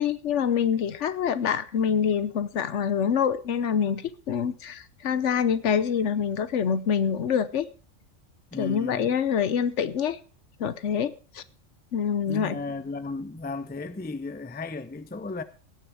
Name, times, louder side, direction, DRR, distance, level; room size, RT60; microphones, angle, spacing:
voice 1, 0.0-7.7 8.6-10.2 10.6-11.4 11.9-12.6, left 7 dB, 65° left, 1.1 m, -26 dB
voice 2, 8.5-9.1 12.3-15.4, left 3 dB, 10° left, 0.5 m, -35 dB
17.0 x 6.6 x 6.1 m
omnidirectional pair, 1.3 m